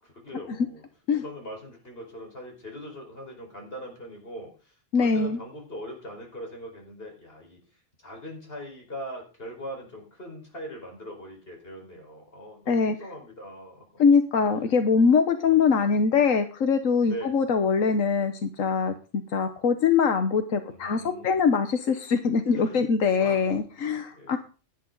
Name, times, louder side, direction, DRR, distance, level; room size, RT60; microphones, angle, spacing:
voice 1, 0.0-0.9 1.2-7.6 8.0-14.0 15.4-15.8 17.0-17.3 20.7-21.5 22.5-22.8 23.2-23.5 24.1-24.4, equal, 45° left, 1 dB, 5.2 m, -41 dB
voice 2, 4.9-5.4 12.7-12.9 14.0-18.9 19.3-24.4, left 5 dB, 90° left, 8 dB, 1.5 m, -23 dB
17.0 x 10.5 x 4.0 m, 0.35 s
omnidirectional pair, 1.3 m